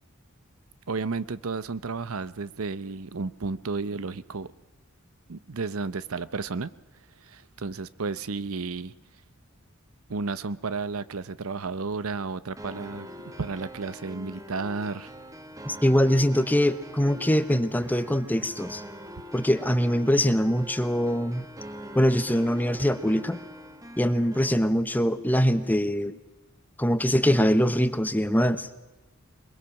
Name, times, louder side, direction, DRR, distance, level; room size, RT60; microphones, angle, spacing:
voice 1, 0.9-4.5 5.3-6.7 7.2-8.9 10.1-13.1 13.4-15.1, right 4 dB, 85° right, 16 dB, 0.8 m, -32 dB
sound 1, 12.6-24.6, equal, 15° right, 1.4 m, -43 dB
voice 2, 15.7-18.8 19.3-21.5 21.9-23.4 24.0-26.2 26.8-28.7, equal, 10° left, 11 dB, 0.9 m, -23 dB
23.0 x 22.0 x 5.9 m, 1.1 s
head